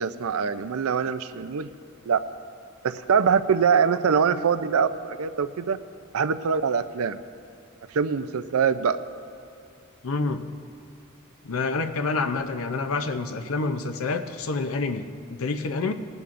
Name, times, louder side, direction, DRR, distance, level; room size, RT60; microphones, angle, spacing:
voice 1, 0.0-1.7 2.1-2.2 2.8-5.8 6.1-7.2 7.9-9.0, right 6 dB, 85° right, 12 dB, 0.5 m, -23 dB
voice 2, 10.0-10.4 11.4-15.9, left 3 dB, 75° left, 8 dB, 0.6 m, -28 dB
20.0 x 12.0 x 2.5 m, 2.6 s
head